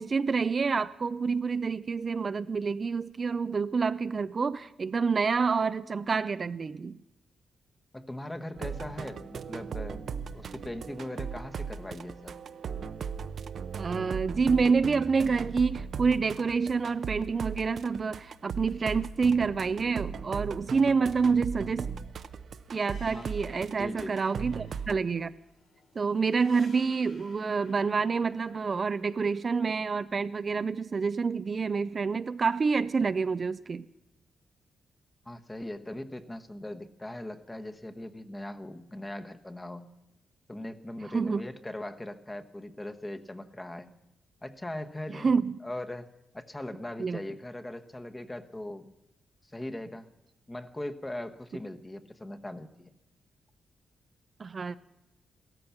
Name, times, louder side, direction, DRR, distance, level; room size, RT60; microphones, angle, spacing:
voice 1, 0.0-7.0 13.8-21.9 22.7-25.3 26.0-33.9 41.1-41.4 45.1-45.6 47.0-47.2 54.4-54.8, right 5 dB, 40° right, 13 dB, 0.4 m, -28 dB
voice 2, 7.9-12.4 23.1-23.3 23.7-24.2 35.2-39.9 40.5-43.9 44.4-46.1 46.3-48.9 49.5-50.1 50.5-52.9, left 1 dB, 15° left, 8 dB, 1.1 m, -40 dB
sound 1, 8.6-24.9, right 6 dB, 65° right, 0.7 m, -38 dB
sound 2, 22.1-29.4, left 4 dB, 85° left, 2.9 m, -57 dB
16.0 x 14.0 x 5.8 m, 0.91 s
cardioid pair, 100°, 0 cm